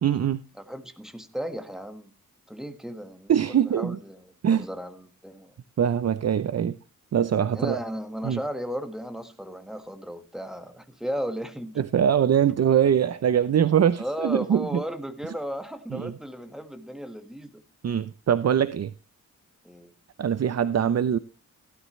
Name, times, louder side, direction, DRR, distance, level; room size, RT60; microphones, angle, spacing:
voice 1, 0.0-0.4 3.3-4.0 4.4-4.6 5.8-6.8 7.1-7.8 8.2-8.4 11.8-14.8 15.9-16.1 17.8-18.9 20.2-21.2, right 9 dB, 55° right, 0.6 m, -23 dB
voice 2, 0.6-2.1 2.5-5.5 7.5-11.8 14.0-17.6 19.6-19.9, equal, ahead, 1.7 m, -35 dB
16.5 x 12.0 x 3.2 m
wide cardioid pair, 100°, 31 cm